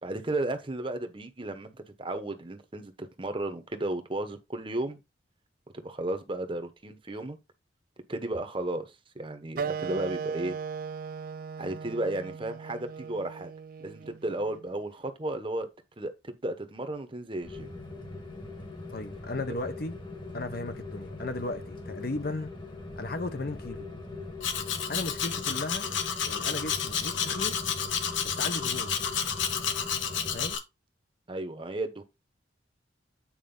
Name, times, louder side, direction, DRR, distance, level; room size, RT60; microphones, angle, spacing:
voice 1, 0.0-5.0 5.7-7.4 8.1-10.6 11.6-13.5 13.8-15.7 16.0-17.7 31.3-32.0, right 1 dB, 25° right, 1.0 m, -34 dB
Wind instrument woodwind instrument, 9.6-14.7, right 6 dB, 50° right, 0.4 m, -37 dB
Rain, 17.4-30.6, left 2 dB, 25° left, 1.3 m, -41 dB
voice 2, 18.9-20.0 20.3-22.5 23.0-23.9 24.9-25.9 26.3-27.6 28.2-29.0 30.3-30.6, left 2 dB, 50° left, 0.9 m, -35 dB
Domestic sounds home sounds, 24.4-30.6, left 7 dB, 80° left, 1.1 m, -31 dB
8.8 x 4.8 x 3.8 m
head